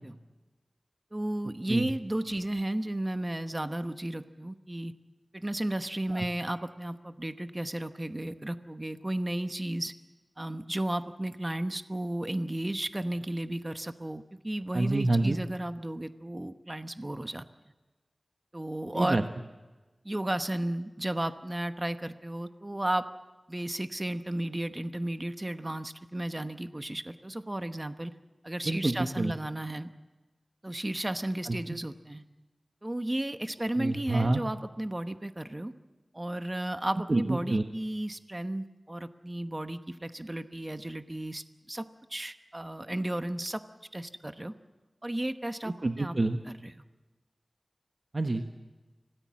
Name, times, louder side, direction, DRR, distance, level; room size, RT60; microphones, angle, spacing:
voice 1, 1.1-4.9 5.3-9.9 10.4-17.4 18.5-19.3 20.0-23.1 23.5-28.1 28.4-29.9 30.6-32.2 32.8-35.7 36.1-43.6 43.9-44.5 45.0-46.1 46.4-46.7, right 1 dB, 25° right, 10 dB, 1.0 m, -34 dB
voice 2, 14.7-15.4 18.9-19.2 28.7-29.3 31.5-31.6 33.8-34.4 37.1-37.6 45.8-46.4 48.1-48.6, right 2 dB, 45° right, 5 dB, 1.2 m, -27 dB
26.0 x 18.0 x 7.5 m, 1.2 s
wide cardioid pair, 75°, 0 cm